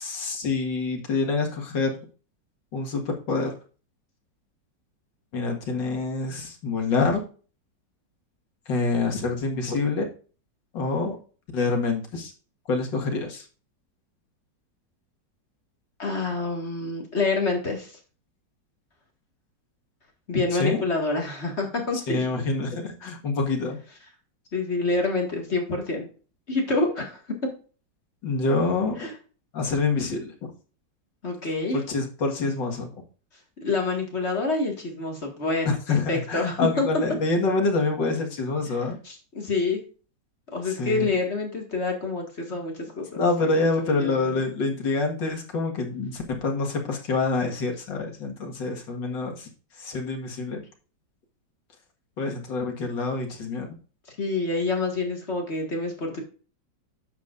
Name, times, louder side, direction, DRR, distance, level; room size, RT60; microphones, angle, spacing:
voice 1, 0.0-1.9 2.7-3.5 5.3-7.2 8.7-10.1 10.7-11.2 11.5-12.3 12.7-13.5 20.6-20.8 22.1-23.8 28.2-29.1 29.5-30.5 31.7-32.9 35.7-39.0 40.7-41.1 43.2-49.5 49.8-50.6 52.2-53.7, left 3 dB, 75° left, 2 dB, 2.4 m, -26 dB
voice 2, 16.0-18.0 20.3-22.2 24.5-26.1 26.5-27.2 29.0-29.1 31.2-31.8 33.6-35.8 36.1-36.9 39.0-39.8 40.5-43.2 43.6-44.4 54.2-56.2, left 3 dB, 35° left, 1 dB, 2.2 m, -27 dB
10.0 x 7.4 x 2.5 m, 0.38 s
omnidirectional pair, 2.0 m